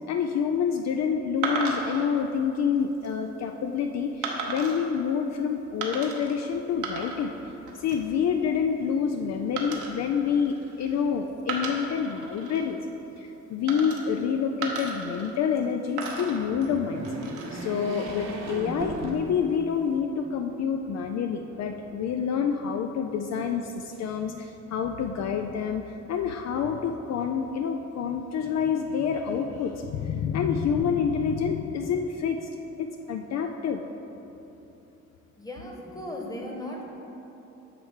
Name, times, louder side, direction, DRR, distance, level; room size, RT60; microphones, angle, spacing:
voice 1, 0.1-7.3 7.7-12.8 13.2-17.1 17.5-32.5 32.8-33.8, left 7 dB, 60° left, 5 dB, 0.4 m, -28 dB
sound 1, 1.4-2.1 2.8-3.1 4.2-4.8 5.8-6.4 6.7-7.4 7.7-8.1 9.6-11.0 11.4-12.6 13.7-14.3 14.6-15.6 16.0-17.7 18.6-19.2, right 4 dB, 85° right, 1.0 m, -35 dB
sound 2, 16.2-19.8 20.3-20.4 21.5-22.3, right 2 dB, 60° right, 1.0 m, -37 dB
voice 2, 35.4-36.8, left 1 dB, 10° left, -1 dB, 1.2 m, -36 dB
8.7 x 3.2 x 6.5 m, 3.0 s
cardioid pair, 90°, 30 cm